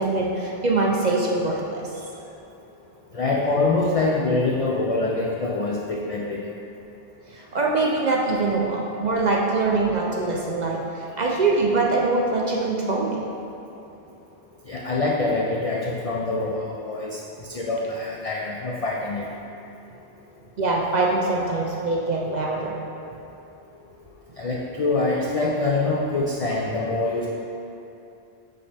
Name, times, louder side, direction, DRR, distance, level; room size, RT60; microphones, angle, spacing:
voice 1, 0.0-1.9 7.3-13.2 20.6-22.8, right 3 dB, 55° right, -2 dB, 0.5 m, -23 dB
voice 2, 3.1-6.5 14.7-19.3 24.4-27.3, left 3 dB, 65° left, -2 dB, 0.3 m, -25 dB
5.6 x 5.4 x 3.3 m, 2.8 s
omnidirectional pair, 1.2 m